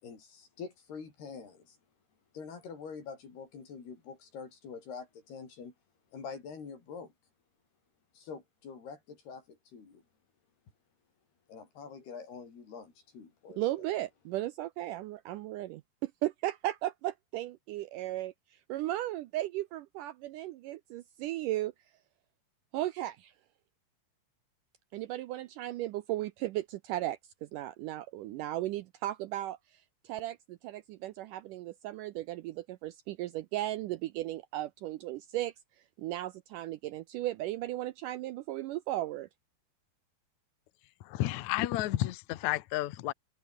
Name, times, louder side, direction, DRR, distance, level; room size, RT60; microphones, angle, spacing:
voice 1, 0.0-1.8 2.3-5.7 6.1-7.1 8.1-10.0 11.5-13.6, left 5 dB, 90° left, 7.5 m, -45 dB
voice 2, 13.6-21.7 22.7-23.3 24.9-35.5 36.0-39.3, right 15 dB, 80° right, 1.9 m, -36 dB
voice 3, 41.1-43.1, left 15 dB, 65° left, 1.9 m, -31 dB
omnidirectional pair, 4.5 m